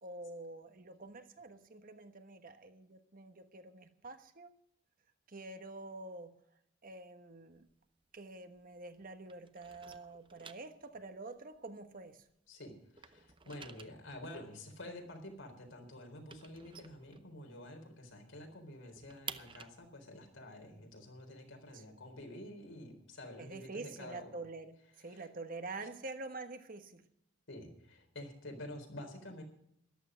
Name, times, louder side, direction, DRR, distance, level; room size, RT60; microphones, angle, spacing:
voice 1, 0.0-4.5 5.3-6.3 6.8-7.7 8.1-12.2 21.7-21.8 23.4-27.0, right 2 dB, 45° right, 8 dB, 1.3 m, -47 dB
sound 1, 7.5-9.0 9.2-12.5 12.8-17.8 18.1-18.2 18.5-22.2, right 6 dB, 25° right, 0.7 m, -52 dB
voice 2, 12.5-24.3 25.0-25.2 27.5-29.4, left 1 dB, 80° left, 3 dB, 4.2 m, -49 dB
14.0 x 12.0 x 6.2 m, 0.74 s
head